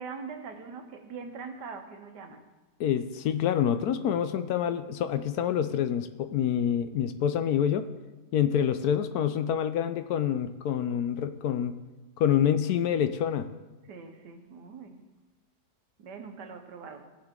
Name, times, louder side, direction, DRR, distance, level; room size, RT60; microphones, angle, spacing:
voice 1, 0.0-2.5 13.9-15.0 16.0-17.1, right 5 dB, 80° right, 6 dB, 1.7 m, -42 dB
voice 2, 2.8-7.9 8.3-11.7 12.2-13.5, left 9 dB, 75° left, 10 dB, 1.1 m, -27 dB
16.5 x 7.5 x 3.7 m, 1.2 s
omnidirectional pair, 1.8 m